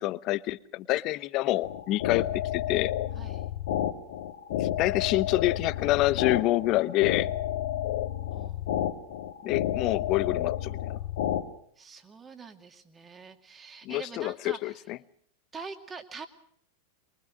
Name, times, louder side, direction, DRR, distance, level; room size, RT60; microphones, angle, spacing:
voice 1, 0.0-2.9 4.6-7.3 9.4-10.9 13.8-15.0, left 17 dB, 40° left, 17 dB, 0.9 m, -27 dB
sound 1, 1.6-11.4, left 12 dB, 55° left, 2.0 m, -30 dB
voice 2, 3.1-3.5 8.3-8.8 11.8-14.9 15.5-16.3, right 5 dB, 20° right, 6 dB, 2.4 m, -45 dB
23.5 x 23.0 x 6.3 m, 0.63 s
figure-of-eight pair, 90°, 0 cm